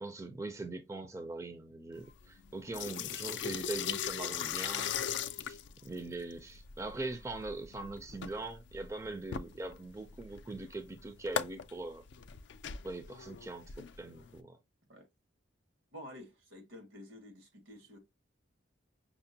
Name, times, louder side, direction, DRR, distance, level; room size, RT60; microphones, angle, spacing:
voice 1, 0.0-4.9 5.5-12.0 12.8-14.6, right 2 dB, 15° right, 0.4 m, -42 dB
sound 1, 1.9-14.4, left 8 dB, 65° left, 0.3 m, -40 dB
voice 2, 15.9-18.0, equal, 90° right, 1.5 m, -50 dB
5.9 x 2.1 x 2.7 m
head